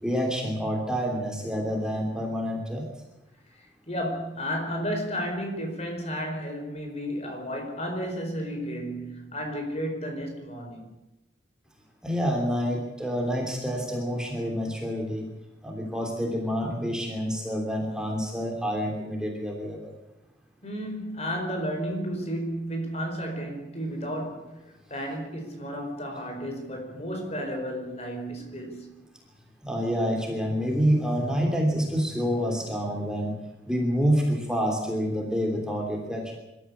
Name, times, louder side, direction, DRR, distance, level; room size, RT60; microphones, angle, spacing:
voice 1, 0.0-2.9 12.0-15.3 15.6-19.9 29.6-33.4 33.6-36.4, equal, 5° right, 3.1 m, -27 dB
voice 2, 3.9-10.9 20.6-24.6 24.9-28.9, equal, 35° left, 4.7 m, -32 dB
25.5 x 13.5 x 8.6 m
head